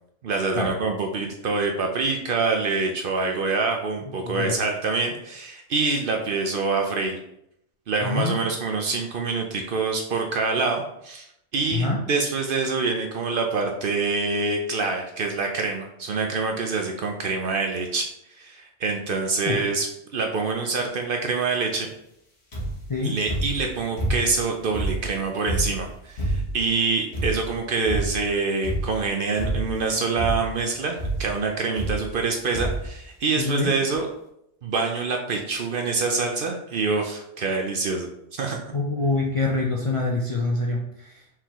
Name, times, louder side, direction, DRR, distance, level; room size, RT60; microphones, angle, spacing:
voice 1, 0.2-7.2 7.9-11.3 11.5-18.1 18.4-19.9 20.1-21.9 23.0-34.1 34.6-38.7, right 4 dB, 60° right, 3 dB, 0.6 m, -26 dB
voice 2, 4.2-4.5 8.0-8.4 11.7-12.0 19.4-19.6 22.9-23.2 33.4-33.7 38.7-41.2, left 3 dB, 40° left, -3 dB, 0.4 m, -25 dB
sound 1, 22.5-22.9 23.3-24.4 24.7-26.7 27.1-27.6 27.8-28.3 28.6-29.0 29.4-29.9 30.2-30.6 31.0-31.3 31.8-32.3 32.5-32.9 33.6-33.7 33.9-34.0, right 1 dB, 60° left, 1.5 m, -28 dB
4.5 x 3.8 x 3.0 m, 0.78 s
omnidirectional pair, 1.2 m